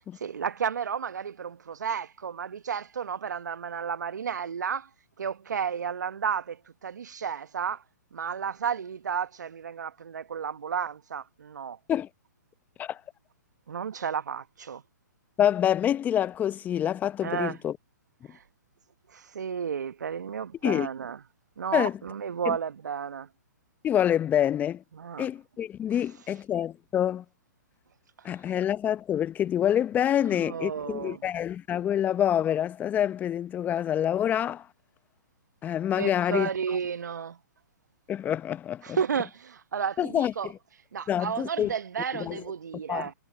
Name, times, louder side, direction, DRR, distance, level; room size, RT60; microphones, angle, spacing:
voice 1, 0.2-4.9 5.2-7.8 8.1-11.8 13.7-14.8 17.2-17.6 18.3-18.4 19.1-21.2 21.6-23.3 24.9-25.3 30.2-31.2 36.0-37.4 38.8-40.5 40.9-43.1, right 7 dB, 65° right, 1.1 m, -32 dB
voice 2, 15.4-17.8 20.6-20.9 21.7-22.0 22.5-22.6 23.8-24.8 25.2-27.2 28.2-34.6 35.6-36.5 38.1-39.0 40.0-40.5 41.1-41.7 42.1-42.4 42.9-43.1, left 10 dB, 15° left, 0.9 m, -26 dB
figure-of-eight pair, 125°, 10 cm